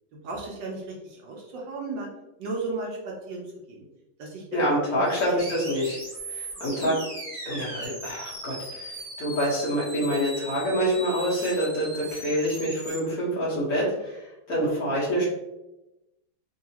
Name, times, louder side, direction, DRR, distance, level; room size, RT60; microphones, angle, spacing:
voice 1, 0.2-2.1 2.4-3.4 3.7-3.8 4.2-4.4 4.9-5.2 6.6-6.9 14.6-14.7, right 3 dB, 70° right, -2 dB, 1.3 m, -35 dB
voice 2, 4.5-6.0 6.3-6.9 7.4-8.9 9.2-14.2 14.5-15.2, equal, 50° left, -7 dB, 1.5 m, -26 dB
sound 1, 5.0-13.0, right 1 dB, 30° right, 1.0 m, -39 dB
3.8 x 2.7 x 2.8 m, 0.95 s
omnidirectional pair, 2.2 m